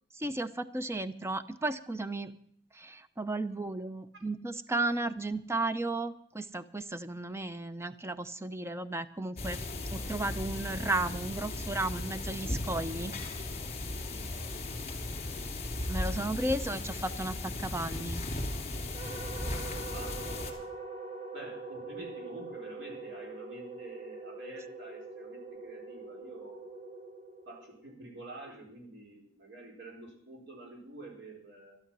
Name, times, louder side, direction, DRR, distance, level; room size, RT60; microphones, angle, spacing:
voice 1, 0.1-2.3 2.7-9.6 9.9-13.2 15.9-18.2, right 2 dB, 15° right, 11 dB, 0.6 m, -34 dB
sound 1, 9.4-20.5, left 2 dB, 35° left, 2.9 m, -36 dB
voice 2, 15.0-15.5 16.2-16.6 19.9-20.4 21.3-26.7 27.4-31.8, right 2 dB, 85° right, 0 dB, 4.5 m, -48 dB
sound 2, 18.9-28.2, right 3 dB, 40° right, 4.9 m, -43 dB
12.5 x 12.5 x 6.1 m, 0.66 s
head